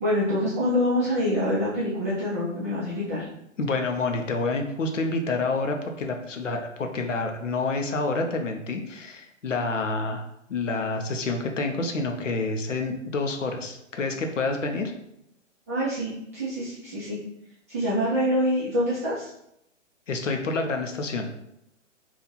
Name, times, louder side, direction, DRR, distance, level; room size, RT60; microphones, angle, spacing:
voice 1, 0.0-3.3 15.7-17.2 17.7-19.3, equal, 15° right, -11 dB, 0.4 m, -26 dB
voice 2, 3.6-10.2 10.5-14.9 20.1-21.3, left 3 dB, 75° left, 4 dB, 0.7 m, -28 dB
2.9 x 2.5 x 3.9 m, 0.79 s
figure-of-eight pair, 120°, 38 cm